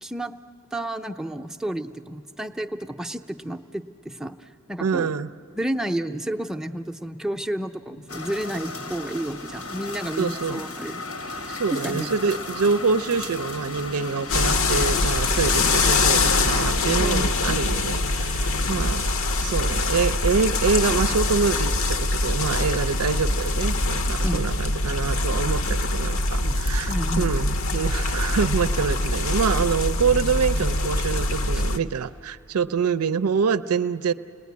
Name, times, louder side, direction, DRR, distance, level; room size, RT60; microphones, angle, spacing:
voice 1, 0.0-0.4 0.7-5.1 5.6-11.1 11.3-12.1 17.0-17.3 24.2-24.4 26.4-26.6 26.9-27.3 31.5-31.6, right 1 dB, 5° right, 5 dB, 0.6 m, -31 dB
voice 2, 4.8-5.3 10.2-10.6 11.5-19.0 19.4-34.1, right 5 dB, 80° right, 15 dB, 0.5 m, -25 dB
sound 1, 8.1-21.7, left 3 dB, 85° left, 1.7 m, -36 dB
sound 2, 14.3-31.8, left 2 dB, 65° left, 0.8 m, -23 dB
29.5 x 20.0 x 9.5 m, 3.0 s
head